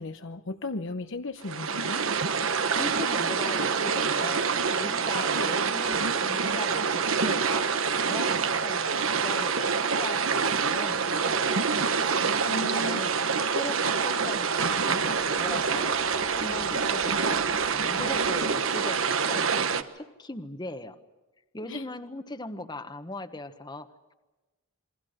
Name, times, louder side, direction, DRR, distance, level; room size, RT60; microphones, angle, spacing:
voice 1, 0.0-2.1 12.4-13.0 21.7-21.8, left 2 dB, 65° left, 8 dB, 0.9 m, -35 dB
sound 1, 1.4-19.8, right 5 dB, 70° right, 1.3 m, -26 dB
voice 2, 2.7-4.4 4.7-7.7 8.1-11.7 12.5-17.4 17.7-21.0 21.5-24.1, left 2 dB, 20° left, 9 dB, 1.3 m, -39 dB
28.5 x 23.0 x 6.6 m, 1.1 s
head